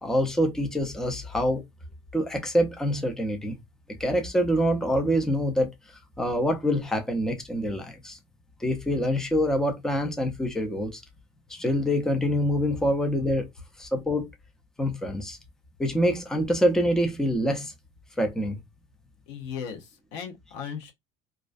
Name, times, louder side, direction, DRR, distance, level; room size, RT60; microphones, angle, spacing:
voice 1, 0.0-1.6 2.1-3.6 4.0-5.7 6.2-8.2 8.6-11.0 11.5-13.5 13.8-14.3 14.8-15.4 15.8-17.7 18.2-18.6, equal, 5° left, 0.4 m, -25 dB
voice 2, 19.3-20.9, left 7 dB, 90° left, 0.7 m, -37 dB
2.4 x 2.2 x 2.4 m
cardioid pair, 130°, 15 cm